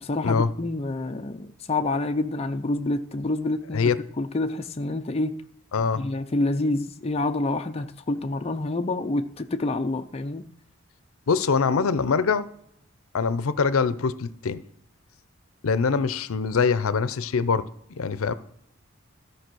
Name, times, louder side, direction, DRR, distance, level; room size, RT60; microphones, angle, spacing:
voice 1, 0.0-3.8 4.2-5.4 6.0-10.5, left 2 dB, 30° left, 0.5 m, -27 dB
voice 2, 5.7-6.1 11.3-12.5 13.1-14.6 15.6-17.7 17.9-18.3, left 5 dB, 90° left, 0.6 m, -23 dB
13.0 x 5.3 x 6.1 m
head